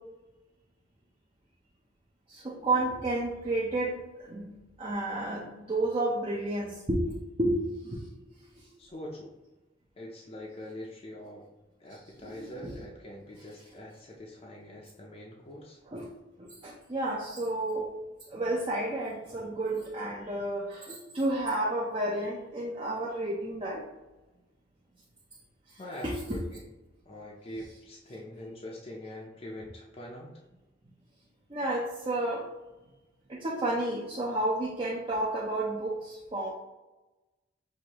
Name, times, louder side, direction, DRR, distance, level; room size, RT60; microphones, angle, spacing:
voice 1, 2.3-8.1 8.5-8.7 12.2-12.7 15.9-16.1 16.4-18.0 18.3-23.8 25.7-26.4 31.5-32.5 33.3-36.5, right 1 dB, 30° right, -4 dB, 0.6 m, -31 dB
voice 2, 8.8-9.3 10.0-11.5 11.8-15.8 25.8-26.6 27.1-30.3, left 1 dB, 35° left, -3 dB, 0.5 m, -43 dB
6.3 x 2.5 x 2.9 m, 1.1 s
head